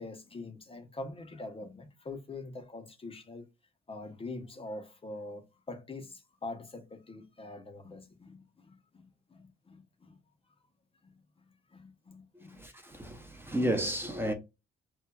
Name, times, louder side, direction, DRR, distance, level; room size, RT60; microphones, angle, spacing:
voice 1, 0.0-3.5 3.9-10.2 11.0-11.1 11.5-12.6, left 2 dB, 30° left, 0.6 m, -44 dB
voice 2, 12.3-14.3, right 1 dB, 10° right, 0.6 m, -32 dB
3.0 x 2.3 x 2.2 m
cardioid pair, 90°, 20 cm